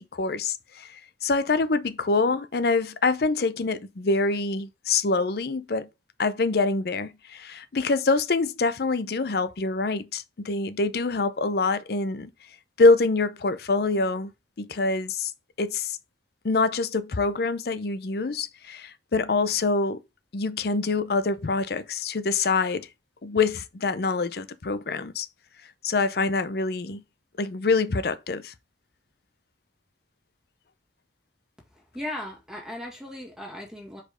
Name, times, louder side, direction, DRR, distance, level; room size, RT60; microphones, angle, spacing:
voice 1, 0.0-5.9 6.2-12.3 12.8-14.3 14.6-15.3 15.6-16.0 16.4-20.0 20.3-22.9 23.2-25.3 25.8-27.0 27.4-28.5, left 3 dB, 60° left, 0.6 m, -25 dB
voice 2, 31.7-34.0, left 1 dB, 5° right, 1.8 m, -37 dB
5.1 x 4.3 x 4.9 m
head